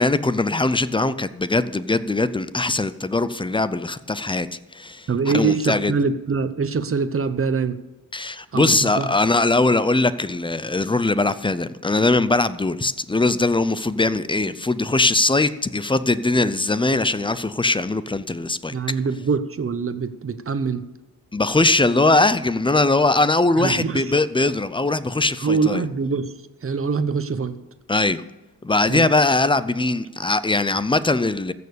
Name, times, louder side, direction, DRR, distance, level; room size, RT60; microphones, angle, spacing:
voice 1, 0.0-4.5 4.7-5.1 5.3-5.9 8.1-18.7 21.3-25.8 27.9-28.2 28.6-31.5, left 2 dB, 15° left, 15 dB, 0.5 m, -21 dB
voice 2, 5.1-7.8 8.5-9.1 18.7-20.8 23.6-24.1 25.4-26.3 26.6-27.6 28.9-29.1, right 4 dB, 35° right, 11 dB, 0.9 m, -24 dB
15.0 x 6.9 x 6.8 m, 1.1 s
wide cardioid pair, 130°, 38 cm